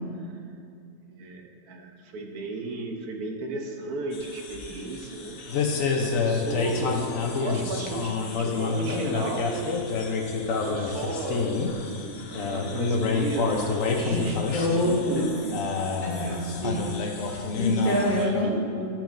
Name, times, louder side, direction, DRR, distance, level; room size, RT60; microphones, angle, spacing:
voice 1, 1.1-5.4 6.0-9.7 10.5-15.6 16.1-16.4 18.2-18.3 18.6-18.8, right 3 dB, 80° right, 2 dB, 1.3 m, -35 dB
sound 1, 4.1-18.2, left 4 dB, 65° left, 1.0 m, -28 dB
voice 2, 14.5-15.2 16.0-16.8 17.2-18.9, left 1 dB, 40° left, -4 dB, 0.9 m, -26 dB
10.0 x 5.9 x 2.5 m, 2.5 s
omnidirectional pair, 1.6 m